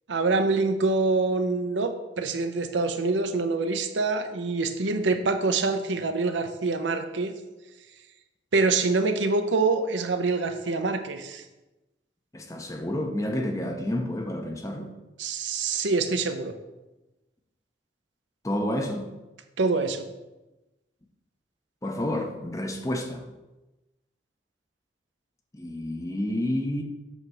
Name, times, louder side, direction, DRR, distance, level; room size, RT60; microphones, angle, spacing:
voice 1, 0.1-7.3 8.5-11.4 15.2-16.5 19.6-20.1, right 3 dB, 90° right, 0.7 m, -25 dB
voice 2, 12.3-14.9 18.4-19.1 21.8-23.2 25.5-26.8, left 1 dB, 20° left, 0.7 m, -29 dB
8.1 x 3.3 x 6.1 m
head